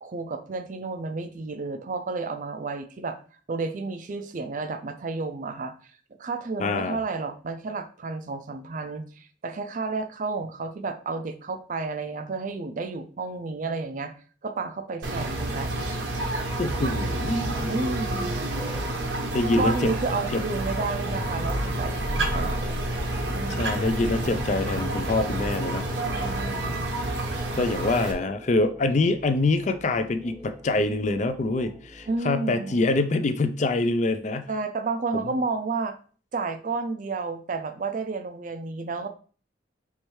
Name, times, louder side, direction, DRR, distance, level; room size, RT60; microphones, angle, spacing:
voice 1, 0.0-3.2 3.5-5.7 6.2-14.1 14.4-15.7 17.7-18.3 19.6-22.8 23.3-23.8 26.0-26.9 32.1-32.8 34.5-36.0 36.3-39.1, right 3 dB, 45° right, 9 dB, 0.4 m, -31 dB
voice 2, 6.6-7.0 16.6-17.8 19.3-19.9 20.3-20.4 23.6-25.9 27.6-34.5 35.1-35.4, left 2 dB, 40° left, 9 dB, 0.4 m, -25 dB
sound 1, 15.0-28.1, right 1 dB, 75° right, 0.8 m, -29 dB
sound 2, 18.5-32.2, equal, 10° right, 0.7 m, -46 dB
sound 3, 21.1-27.2, equal, 65° left, 1.1 m, -34 dB
4.6 x 3.1 x 3.1 m, 0.41 s
head